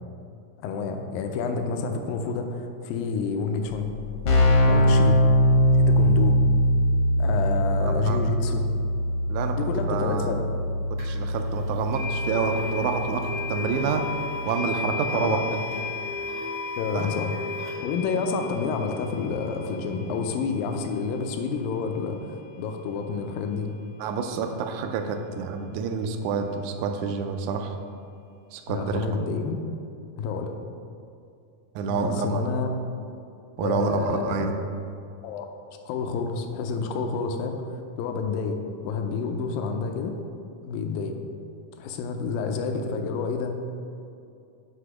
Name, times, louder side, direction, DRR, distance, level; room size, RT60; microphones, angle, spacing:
voice 1, 0.6-3.9 4.7-5.2 5.7-6.4 7.2-8.6 9.5-10.5 13.8-13.9 15.1-15.8 16.8-23.7 28.7-29.6 30.2-30.5 31.9-32.7 33.6-34.7 35.2-35.5 35.9-40.2 40.6-41.2 41.8-43.6, left 5 dB, 85° left, 5 dB, 2.3 m, -29 dB
Keyboard (musical), 3.7-3.8 3.9-14.6, equal, 70° left, 1.4 m, -22 dB
voice 2, 7.8-8.2 9.3-9.6 9.9-10.4 10.9-14.0 14.5-15.5 16.9-17.1 24.0-27.7 28.5-29.2 31.8-32.4 33.6-34.6, right 5 dB, 90° right, 5 dB, 1.6 m, -28 dB
sound 1, 11.0-11.1 11.9-22.9, left 4 dB, 60° right, 0.9 m, -35 dB
7.9 x 2.8 x 5.9 m, 2.5 s
omnidirectional pair, 3.9 m